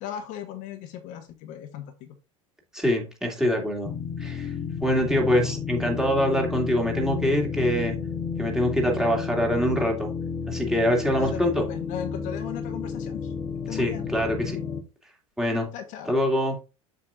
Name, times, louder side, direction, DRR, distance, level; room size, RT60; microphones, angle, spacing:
voice 1, 0.0-2.1 11.1-13.3 13.7-14.1 15.7-16.2, left 10 dB, 50° left, 6 dB, 1.2 m, -36 dB
voice 2, 2.7-3.9 4.2-4.5 4.8-8.0 8.4-10.1 10.5-11.6 13.7-14.6 15.4-15.7 16.1-16.6, equal, 5° right, 0 dB, 2.5 m, -24 dB
sound 1, 3.8-14.8, left 5 dB, 30° left, 1.0 m, -32 dB
7.6 x 6.0 x 2.6 m, 0.30 s
hypercardioid pair, 90°, 17 cm